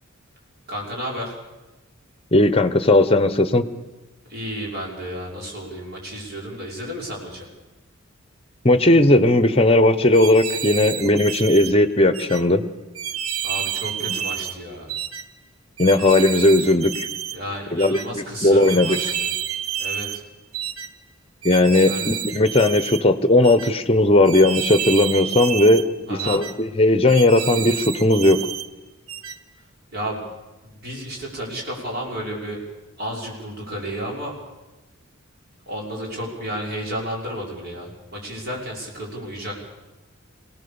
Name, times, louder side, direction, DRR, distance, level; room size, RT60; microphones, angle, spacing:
voice 1, 0.7-1.3 4.3-7.5 13.4-14.9 17.3-19.3 19.8-20.2 21.9-22.1 26.1-26.4 29.9-30.2 30.8-32.6 33.0-34.4 35.7-39.6, equal, 50° right, -2 dB, 5.9 m, -32 dB
voice 2, 2.3-3.6 8.6-12.6 14.1-14.2 15.8-17.1 17.7-19.0 21.4-28.4, left 2 dB, 25° left, 12 dB, 1.0 m, -17 dB
sound 1, 10.1-11.7 12.1-12.4 13.0-14.6 14.9-15.2 15.8-17.4 17.8-18.1 18.6-20.2 20.5-20.9 21.4-23.0 23.4-23.7 24.2-25.9 26.2-26.5 27.1-28.7 29.1-29.4, right 9 dB, 90° right, 1.0 m, -29 dB
24.5 x 18.5 x 7.0 m, 1.1 s
head